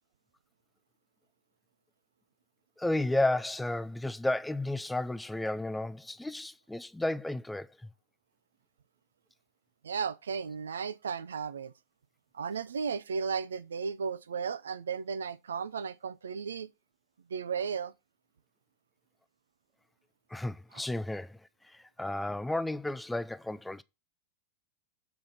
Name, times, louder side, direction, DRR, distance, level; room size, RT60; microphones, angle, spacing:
voice 1, 2.8-7.9 20.3-23.8, left 1 dB, 5° left, 0.4 m, -33 dB
voice 2, 9.8-11.7 12.3-16.7 17.3-17.9 20.7-20.8, right 6 dB, 70° right, 0.4 m, -35 dB
7.6 x 3.6 x 5.9 m
figure-of-eight pair, 90°, 0 cm